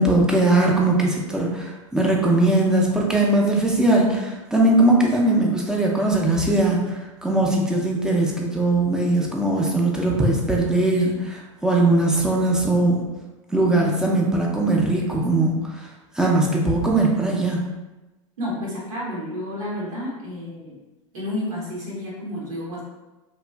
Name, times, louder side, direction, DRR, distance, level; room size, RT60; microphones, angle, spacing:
voice 1, 0.0-13.0 13.5-15.5 16.2-17.6, right 2 dB, 5° right, -2 dB, 0.5 m, -20 dB
voice 2, 18.4-20.8 21.1-22.8, left 1 dB, 80° right, -5 dB, 1.1 m, -30 dB
2.9 x 2.4 x 2.3 m, 1.1 s
hypercardioid pair, 105°, 17 cm